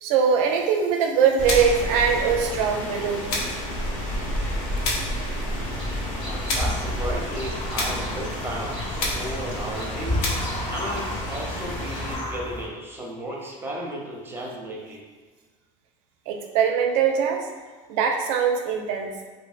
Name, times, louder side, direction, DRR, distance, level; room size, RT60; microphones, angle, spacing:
voice 1, 0.0-3.4 16.3-17.5 17.9-19.1, right 6 dB, 85° right, 3 dB, 0.4 m, -22 dB
Rain, 1.4-12.1, equal, 60° left, 0.9 m, -31 dB
sound 1, 1.5-1.9 3.3-3.7 4.8-5.2 6.5-6.8 7.7-8.1 9.0-9.4 10.2-10.6, left 2 dB, 80° left, 0.6 m, -29 dB
sound 2, 5.5-12.7, left 1 dB, 35° left, 0.6 m, -32 dB
voice 2, 6.0-15.0, right 1 dB, 15° right, -1 dB, 0.6 m, -34 dB
2.6 x 2.4 x 2.4 m, 1.4 s
supercardioid pair, 100°, 16 cm